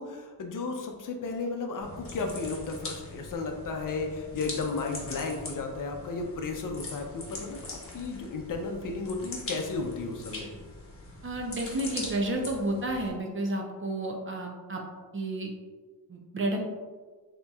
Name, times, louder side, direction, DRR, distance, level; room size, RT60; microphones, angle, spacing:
voice 1, 0.0-10.5, left 3 dB, 50° left, 3 dB, 0.6 m, -34 dB
sound 1, 1.8-13.1, left 2 dB, 35° left, 1.0 m, -42 dB
voice 2, 11.2-14.8 15.1-15.5 16.1-16.6, right 1 dB, 30° right, 0 dB, 0.7 m, -31 dB
6.8 x 2.9 x 2.3 m, 1.4 s
wide cardioid pair, 140°, 40 cm